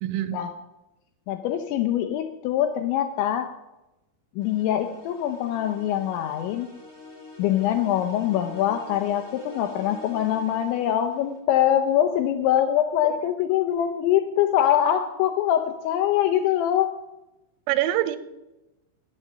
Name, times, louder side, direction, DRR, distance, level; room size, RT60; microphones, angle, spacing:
voice 1, 0.0-0.4 13.0-13.1 17.7-18.2, right 14 dB, 85° right, 13 dB, 3.3 m, -25 dB
voice 2, 1.3-3.5 4.4-6.7 7.4-17.0, left 11 dB, 85° left, 6 dB, 2.6 m, -23 dB
sound 1, 4.4-11.4, left 3 dB, 15° left, 0.7 m, -46 dB
11.5 x 8.1 x 6.7 m, 0.97 s
omnidirectional pair, 5.9 m